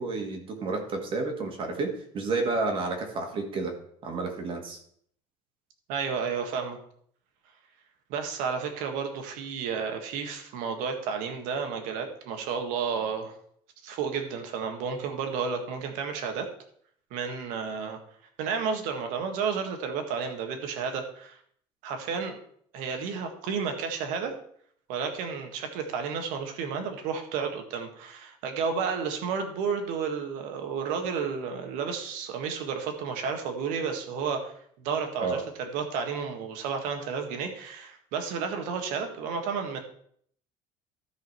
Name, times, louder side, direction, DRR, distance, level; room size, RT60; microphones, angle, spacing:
voice 1, 0.0-3.7 4.0-4.8 35.2-35.4, right 3 dB, 40° right, 4 dB, 1.7 m, -30 dB
voice 2, 5.9-6.8 8.1-13.4 13.8-16.5 17.1-18.0 18.4-21.4 21.8-22.4 22.7-24.3 24.9-39.8, right 6 dB, 75° right, 5 dB, 1.8 m, -32 dB
13.0 x 5.1 x 4.6 m, 0.64 s
cardioid pair, 150°, 13 cm